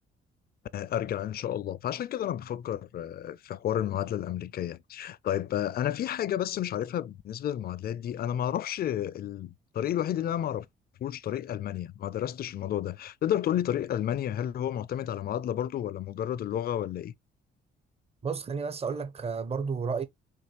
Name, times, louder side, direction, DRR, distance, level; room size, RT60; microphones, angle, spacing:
voice 1, 0.7-10.7 11.0-17.1, left 11 dB, 50° left, 0.4 m, -31 dB
voice 2, 18.2-20.0, right 5 dB, 30° right, 0.8 m, -32 dB
5.2 x 3.0 x 3.0 m
cardioid pair, 90°, 20 cm